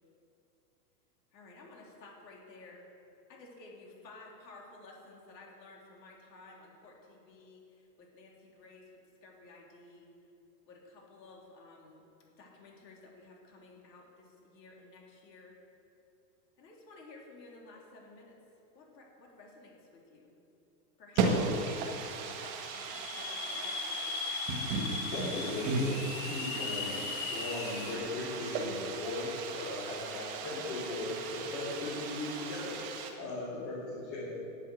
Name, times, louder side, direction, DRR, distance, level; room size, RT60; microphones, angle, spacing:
voice 1, 1.3-2.9 3.3-10.1 10.7-12.0 12.4-15.5 16.6-18.3 18.7-20.3 21.0-21.2 21.8-24.2 26.5-27.1, left 3 dB, 80° left, -1 dB, 3.4 m, -54 dB
voice 2, 21.2-33.1, right 3 dB, 35° right, 3 dB, 1.7 m, -36 dB
sound 1, 22.6-28.0, left 5 dB, 15° left, 0.5 m, -38 dB
voice 3, 25.1-25.9 26.2-27.0 27.3-34.4, left 2 dB, 35° left, -8 dB, 3.5 m, -38 dB
10.5 x 8.8 x 7.6 m, 3.0 s
supercardioid pair, 165°, 49 cm